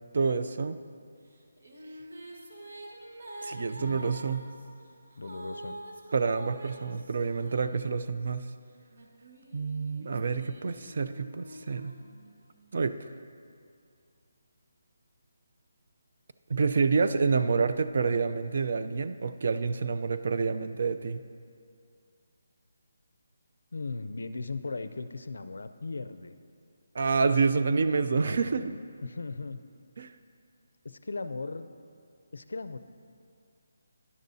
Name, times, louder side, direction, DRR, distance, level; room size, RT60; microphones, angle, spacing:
voice 1, 0.1-0.8 3.4-4.5 6.1-8.5 9.5-11.9 12.7-13.0 16.5-21.2 26.9-28.7 30.0-30.1, right 4 dB, 45° right, 11 dB, 0.4 m, -28 dB
sound 1, 1.3-8.3 8.9-12.7, right 1 dB, 75° right, 1.4 m, -46 dB
voice 2, 3.8-4.2 5.2-5.7 23.7-26.4 28.1-29.6 30.8-31.7 32.3-32.8, left 3 dB, 85° left, 11 dB, 0.4 m, -38 dB
13.0 x 10.5 x 2.7 m, 2.3 s
hypercardioid pair, 175°, 0 cm